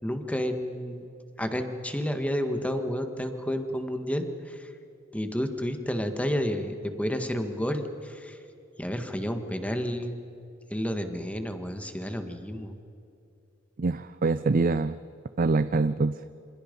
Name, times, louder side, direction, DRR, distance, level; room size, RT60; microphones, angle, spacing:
voice 1, 0.0-1.1 1.4-4.7 5.1-8.4 8.8-10.2 10.7-12.7, equal, 5° left, 6 dB, 1.7 m, -30 dB
voice 2, 13.8-15.0 15.4-16.2, right 3 dB, 45° right, 13 dB, 0.5 m, -24 dB
27.5 x 26.5 x 5.4 m, 2.6 s
head